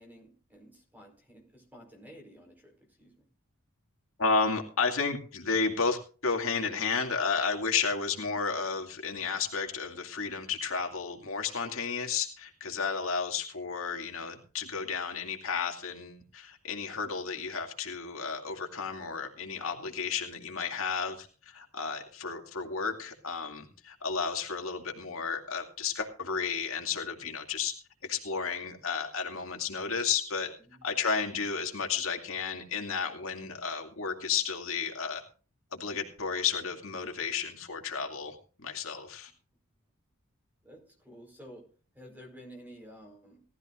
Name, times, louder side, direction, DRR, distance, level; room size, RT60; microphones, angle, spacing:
voice 1, 0.0-3.3 30.7-30.8 40.6-43.4, equal, 10° right, 2 dB, 4.8 m, -52 dB
voice 2, 4.2-27.7 28.0-30.5 30.8-35.2 35.7-39.3, left 5 dB, 70° left, 3 dB, 2.4 m, -32 dB
19.0 x 13.5 x 2.5 m, 0.37 s
head